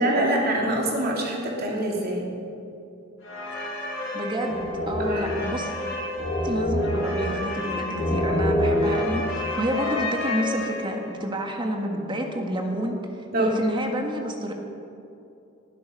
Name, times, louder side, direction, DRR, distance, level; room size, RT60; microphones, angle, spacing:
voice 1, 0.0-2.3 5.0-5.3 13.3-13.6, right 1 dB, 50° right, -1 dB, 3.2 m, -25 dB
sound 1, 3.2-11.1, left 1 dB, 75° left, 4.8 m, -27 dB
voice 2, 4.1-5.7 6.4-13.0 13.4-14.5, right 1 dB, 25° right, 2 dB, 1.6 m, -29 dB
19.5 x 12.0 x 5.4 m, 2.7 s
head